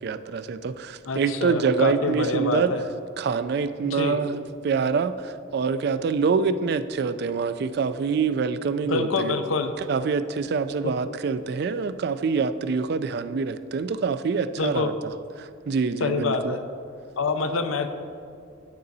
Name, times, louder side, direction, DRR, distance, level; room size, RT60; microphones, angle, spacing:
voice 1, 0.0-2.7 3.2-9.4 9.9-14.9 15.4-16.6, right 5 dB, 50° right, 13 dB, 0.3 m, -25 dB
voice 2, 1.1-2.8 3.8-4.2 8.8-9.7 14.6-14.9 16.0-16.6 17.2-17.9, left 4 dB, 85° left, 8 dB, 0.6 m, -26 dB
9.5 x 6.8 x 4.0 m, 2.5 s
head